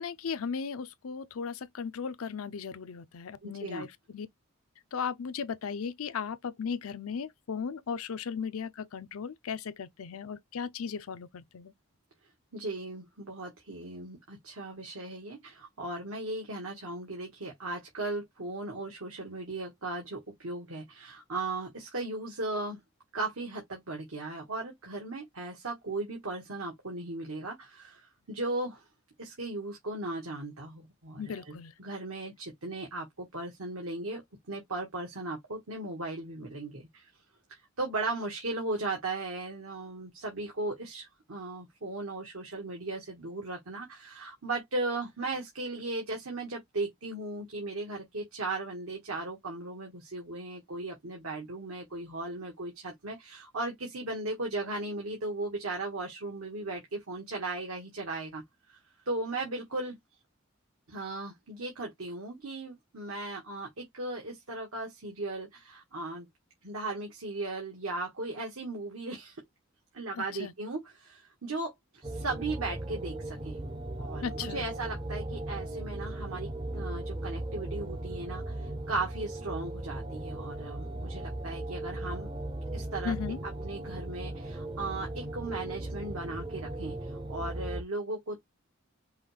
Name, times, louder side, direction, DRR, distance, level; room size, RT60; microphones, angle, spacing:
voice 1, 0.0-4.3 4.9-11.7 31.2-31.7 70.2-70.5 74.2-74.7 83.0-83.4, left 6 dB, 85° left, 0.5 m, -36 dB
voice 2, 3.4-3.9 12.5-22.8 23.1-28.8 29.2-34.2 34.5-37.1 37.5-58.8 59.0-60.0 60.9-66.3 66.6-69.4 69.9-73.6 74.0-82.3 82.7-83.1 83.4-88.4, right 2 dB, 85° right, 1.5 m, -37 dB
sound 1, 72.0-87.8, right 1 dB, 20° right, 0.5 m, -37 dB
5.5 x 2.3 x 3.3 m
head